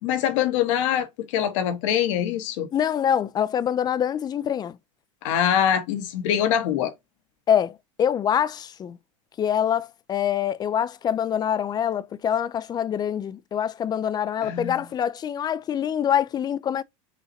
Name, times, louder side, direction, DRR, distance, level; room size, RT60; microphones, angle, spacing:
voice 1, 0.0-2.7 5.2-6.9 14.4-14.7, left 9 dB, 70° left, 1.2 m, -24 dB
voice 2, 2.7-4.8 7.5-9.0 9.4-16.8, left 9 dB, 25° left, 0.4 m, -25 dB
5.7 x 2.8 x 2.7 m
hypercardioid pair, 105°, 17 cm